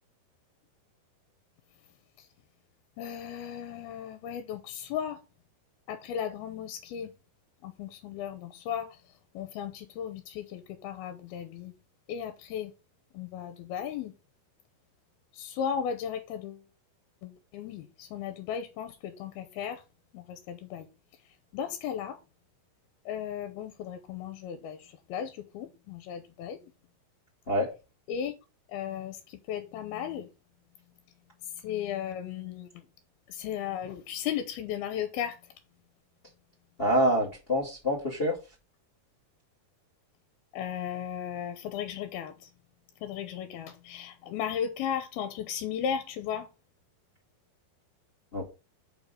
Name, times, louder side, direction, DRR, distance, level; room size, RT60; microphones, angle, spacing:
voice 1, 3.0-5.2 5.9-7.1 7.6-8.9 9.4-11.7 12.1-12.7 13.1-14.1 15.4-16.6 17.2-19.8 20.1-20.9 21.5-22.2 23.1-26.6 28.1-28.3 28.7-30.3 31.6-32.7 33.3-35.4 40.5-42.3 43.0-46.5, left 8 dB, 80° left, 2.7 m, -35 dB
voice 2, 36.8-38.4 48.3-48.5, equal, 30° left, 1.1 m, -26 dB
5.6 x 5.3 x 6.6 m
omnidirectional pair, 4.6 m